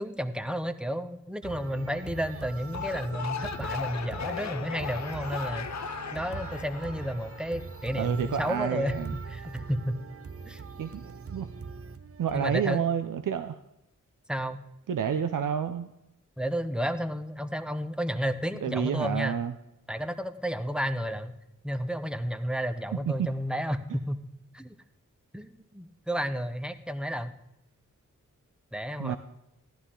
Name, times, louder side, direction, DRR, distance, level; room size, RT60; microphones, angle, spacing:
voice 1, 0.0-5.7 6.1-9.0 9.3-10.0 10.5-10.6 12.3-12.9 14.3-14.6 16.4-19.4 19.9-21.4 21.6-24.2 24.5-24.7 25.3-27.3 28.7-29.2, equal, 5° right, 10 dB, 0.8 m, -32 dB
sound 1, 1.4-12.8, right 5 dB, 45° right, 0.7 m, -42 dB
sound 2, 2.6-7.9, left 7 dB, 60° left, 0.7 m, -37 dB
voice 2, 7.9-9.1 10.8-11.5 12.2-13.6 14.9-15.9 18.6-19.5 23.2-23.3 29.0-29.2, right 8 dB, 80° right, 9 dB, 0.6 m, -29 dB
14.5 x 11.5 x 3.8 m, 0.89 s
cardioid pair, 55°, 32 cm